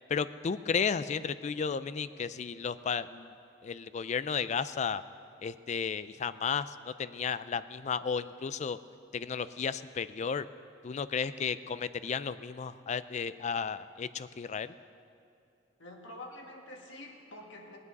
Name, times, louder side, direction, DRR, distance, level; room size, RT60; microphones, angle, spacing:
voice 1, 0.1-3.3 3.6-5.0 5.4-8.8 9.1-10.5 10.8-14.7, left 6 dB, 40° left, 14 dB, 0.3 m, -33 dB
voice 2, 15.8-17.8, left 1 dB, 80° left, 0 dB, 1.8 m, -47 dB
20.5 x 9.6 x 4.1 m, 2.6 s
head